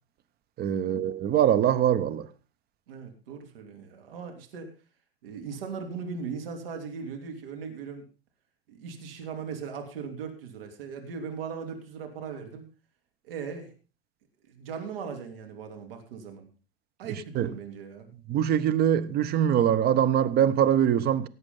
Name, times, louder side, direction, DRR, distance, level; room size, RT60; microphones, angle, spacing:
voice 1, 0.6-2.3 17.4-17.5 18.3-21.3, right 10 dB, 30° right, 1.0 m, -23 dB
voice 2, 2.9-4.7 5.2-8.1 8.7-12.7 13.2-13.7 14.5-16.5 17.0-18.1, right 6 dB, 65° right, 3.0 m, -38 dB
17.0 x 8.1 x 5.4 m
hypercardioid pair, 95°, 31 cm